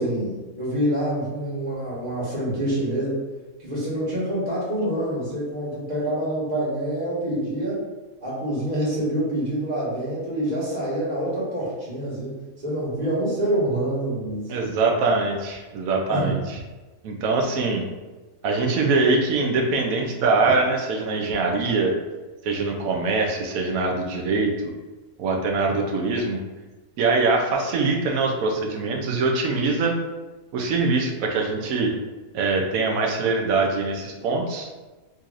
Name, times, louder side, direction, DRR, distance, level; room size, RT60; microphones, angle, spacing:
voice 1, 0.0-3.2 3.6-7.8 8.2-12.3 12.6-14.8 16.1-16.3 20.4-20.5, right 1 dB, 30° right, -7 dB, 1.3 m, -26 dB
voice 2, 14.5-16.6 17.0-17.8 18.4-21.9 22.4-24.7 25.2-26.4 27.0-29.9 30.5-31.9 32.3-34.7, right 3 dB, 75° right, 1 dB, 1.0 m, -23 dB
3.8 x 2.7 x 2.5 m, 1.2 s
omnidirectional pair, 1.6 m